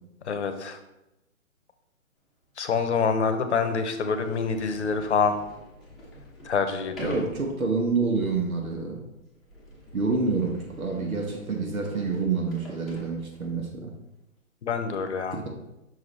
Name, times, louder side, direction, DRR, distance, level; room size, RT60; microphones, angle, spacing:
voice 1, 0.2-0.8 2.6-5.4 6.4-7.3 14.6-15.4, left 5 dB, 55° left, 9 dB, 0.9 m, -26 dB
Sliding door, 2.4-2.5 3.3-3.4 3.8-13.7, equal, ahead, 1.0 m, -48 dB
voice 2, 7.0-9.1 9.9-13.9 15.3-15.4, right 4 dB, 80° right, 2 dB, 1.4 m, -27 dB
6.3 x 4.8 x 4.2 m, 0.93 s
hypercardioid pair, 150°, 42 cm